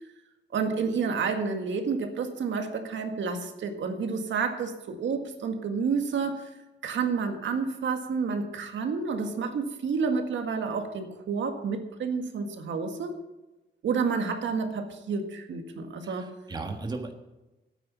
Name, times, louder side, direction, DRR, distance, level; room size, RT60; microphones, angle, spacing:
voice 1, 0.5-6.5 6.8-13.2 13.8-16.3, right 5 dB, 80° right, 5 dB, 1.9 m, -30 dB
voice 2, 16.0-17.1, right 3 dB, 20° right, 4 dB, 1.4 m, -36 dB
13.5 x 9.2 x 7.0 m, 1.0 s
wide cardioid pair, 160°, 19 cm